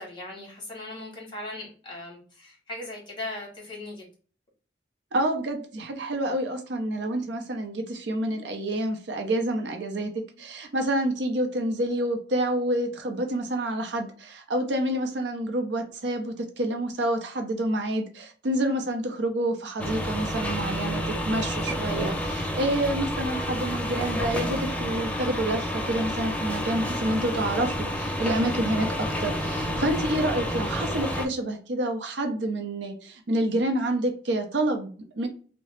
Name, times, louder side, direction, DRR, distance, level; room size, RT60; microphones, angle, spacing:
voice 1, 0.0-4.1, left 2 dB, 30° left, 1.4 m, -38 dB
voice 2, 5.1-10.1 10.4-35.3, right 1 dB, 70° right, 0.6 m, -28 dB
sound 1, 19.8-31.3, equal, 10° left, 0.4 m, -29 dB
2.8 x 2.1 x 3.0 m
head